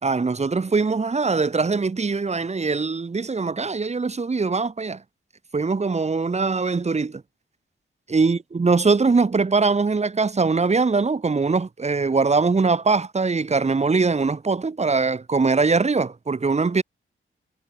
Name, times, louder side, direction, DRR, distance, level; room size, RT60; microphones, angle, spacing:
voice 1, 0.0-5.0 5.5-7.2 8.1-16.8, right 4 dB, 30° right, 2.0 m, -22 dB
wide cardioid pair, 160°, 21 cm